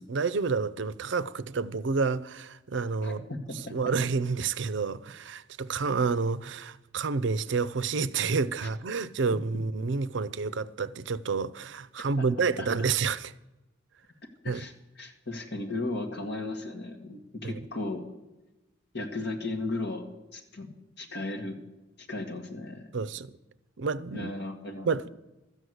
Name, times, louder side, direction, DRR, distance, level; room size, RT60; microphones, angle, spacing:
voice 1, 0.0-3.3 3.7-13.3 14.5-14.7 17.4-17.5 22.9-23.3 23.8-24.3 24.8-25.0, right 4 dB, 65° right, 0.5 m, -29 dB
voice 2, 3.0-3.7 12.2-12.3 12.6-12.9 14.4-18.0 18.9-20.1 20.3-21.6 22.0-22.9 24.1-24.9, left 2 dB, 60° left, 2.0 m, -36 dB
13.5 x 8.1 x 7.8 m
head